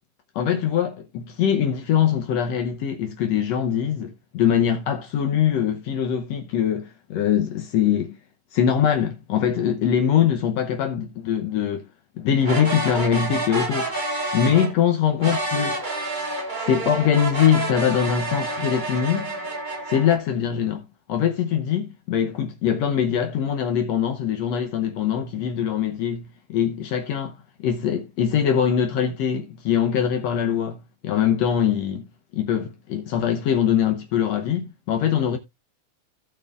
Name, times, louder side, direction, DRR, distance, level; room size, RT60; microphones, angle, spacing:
voice 1, 0.3-8.2 8.5-11.9 12.2-13.9 14.3-15.8 16.6-19.3 19.9-32.1 32.3-35.4, left 8 dB, 90° left, 1.4 m, -22 dB
sound 1, 12.4-14.7 15.2-20.2, right 2 dB, 45° right, 0.6 m, -28 dB
16.5 x 6.1 x 2.5 m
omnidirectional pair, 4.3 m